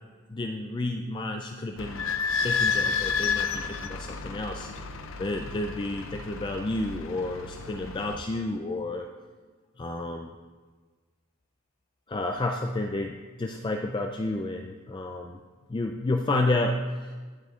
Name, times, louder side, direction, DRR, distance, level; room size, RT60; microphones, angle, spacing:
voice 1, 0.3-2.1 2.4-4.7 5.2-9.1 9.8-10.3 12.1-15.4 15.7-17.1, left 2 dB, 25° left, 3 dB, 0.3 m, -30 dB
Idling / Squeak, 1.8-8.2, left 5 dB, 70° left, 0.6 m, -31 dB
22.0 x 7.9 x 2.4 m, 1.4 s
head